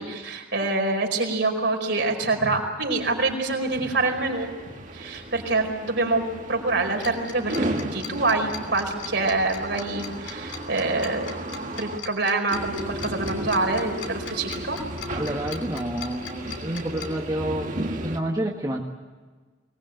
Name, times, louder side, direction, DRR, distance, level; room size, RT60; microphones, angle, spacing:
voice 1, 0.0-4.5 4.9-14.8, right 3 dB, 60° right, 2 dB, 4.9 m, -26 dB
sound 1, 3.0-12.0 12.5-18.2, right 1 dB, 40° right, 1.9 m, -35 dB
Tick-tock, 7.0-17.1, left 7 dB, 70° left, 3.1 m, -39 dB
voice 2, 15.2-18.8, right 1 dB, 20° right, -1 dB, 1.8 m, -29 dB
24.0 x 20.0 x 9.1 m, 1.4 s
head